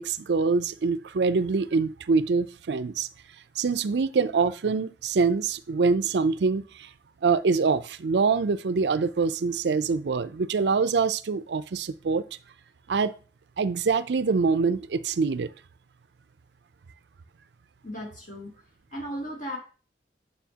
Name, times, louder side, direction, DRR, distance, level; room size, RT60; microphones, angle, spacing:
voice 1, 0.0-3.1 3.6-6.9 7.2-12.2 12.9-13.1 13.6-15.5, right 4 dB, 75° right, 0.5 m, -25 dB
voice 2, 17.8-18.5 18.9-19.6, equal, 50° left, 2.5 m, -35 dB
9.2 x 6.7 x 2.9 m
head